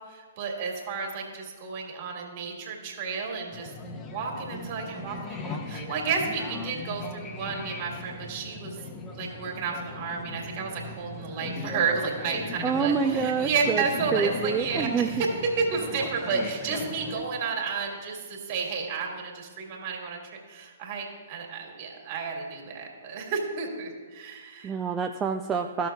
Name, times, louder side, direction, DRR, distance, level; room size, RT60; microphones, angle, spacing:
voice 1, 0.1-3.7 4.1-8.7 9.2-15.3 15.6-24.7, right 5 dB, 40° right, 0 dB, 1.8 m, -31 dB
sound 1, 3.5-17.2, left 3 dB, 20° left, 0.8 m, -38 dB
voice 2, 12.6-13.8 14.1-15.1 24.6-25.9, right 6 dB, 20° right, 4 dB, 0.4 m, -27 dB
14.0 x 6.0 x 2.3 m, 1.5 s
figure-of-eight pair, 115°, 0 cm